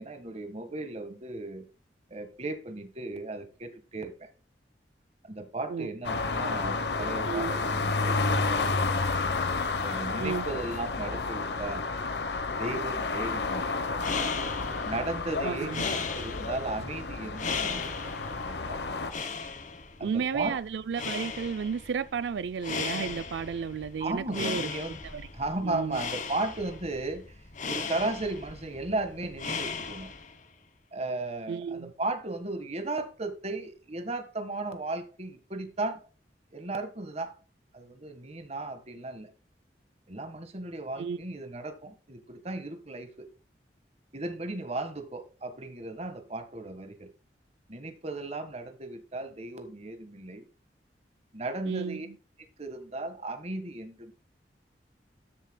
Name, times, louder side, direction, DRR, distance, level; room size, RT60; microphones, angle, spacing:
voice 1, 0.0-1.7 2.1-4.3 5.2-9.1 9.8-11.9 12.5-13.8 14.8-18.8 20.0-20.5 24.0-25.0 25.3-27.2 27.6-30.1 30.9-36.0 36.5-37.3 37.7-39.3 40.1-43.3 44.1-47.1 47.7-50.4 51.3-52.1 52.6-54.1, right 2 dB, 35° right, 1.5 m, -36 dB
sound 1, 6.0-19.1, left 3 dB, 75° left, 1.0 m, -31 dB
sound 2, 14.0-30.4, left 5 dB, 45° left, 1.3 m, -37 dB
voice 2, 15.4-15.9 20.0-24.7 25.0-25.3 25.6-26.0 31.5-31.9 41.0-41.2 51.7-52.0, right 6 dB, 85° right, 0.4 m, -32 dB
13.0 x 6.8 x 2.2 m
head